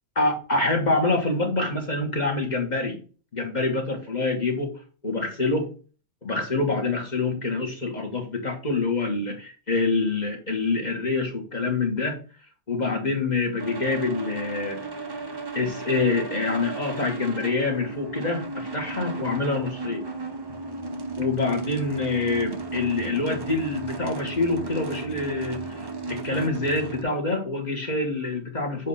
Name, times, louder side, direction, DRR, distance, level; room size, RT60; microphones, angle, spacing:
voice 1, 0.2-3.0 3.3-4.7 5.0-5.7 6.2-12.2 12.7-14.8 15.5-20.0 21.2-28.9, left 3 dB, 40° left, 1 dB, 1.4 m, -26 dB
sound 1, 13.6-27.0, right 3 dB, 25° right, 0.6 m, -34 dB
7.3 x 2.5 x 5.4 m, 0.37 s
omnidirectional pair, 1.2 m